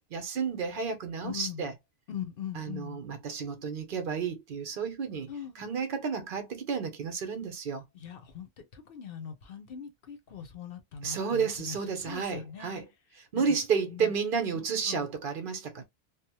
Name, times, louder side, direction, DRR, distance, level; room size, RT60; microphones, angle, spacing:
voice 1, 0.1-1.7 2.6-5.3 5.6-7.8 11.0-12.8 13.3-15.8, right 6 dB, 60° right, 0.8 m, -31 dB
voice 2, 1.2-1.7 2.1-3.0 5.3-5.6 7.9-12.7 13.4-13.6 13.9-14.1 14.5-15.1, left 8 dB, 65° left, 0.8 m, -41 dB
2.8 x 2.0 x 2.8 m
omnidirectional pair, 1.1 m